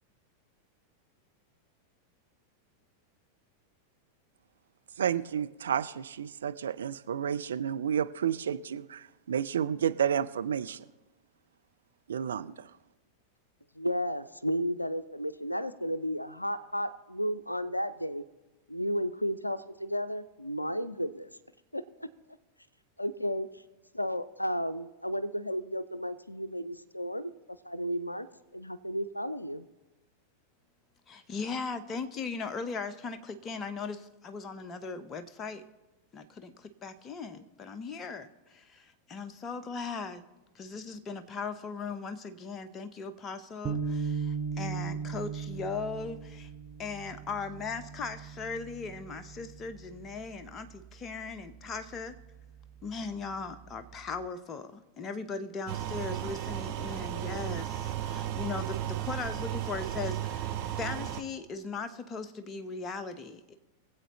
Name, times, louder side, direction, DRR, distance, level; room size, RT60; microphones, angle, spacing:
voice 1, 5.0-10.8 12.1-12.7, right 8 dB, 65° right, 11 dB, 0.4 m, -31 dB
voice 2, 13.7-18.2 18.7-21.3 21.7-22.1 23.0-23.6 23.9-27.3 27.6-28.3 28.5-29.6, equal, 85° left, 15 dB, 0.4 m, -33 dB
voice 3, 31.1-35.6 36.1-40.2 40.5-46.5 46.8-52.2 52.8-63.5, left 4 dB, 25° left, 9 dB, 0.8 m, -38 dB
sound 1, 43.6-50.1, right 6 dB, 20° right, 1.2 m, -37 dB
sound 2, 55.7-61.2, right 11 dB, 45° right, 0.8 m, -34 dB
23.5 x 8.0 x 3.1 m, 1.1 s
figure-of-eight pair, 90°, 0 cm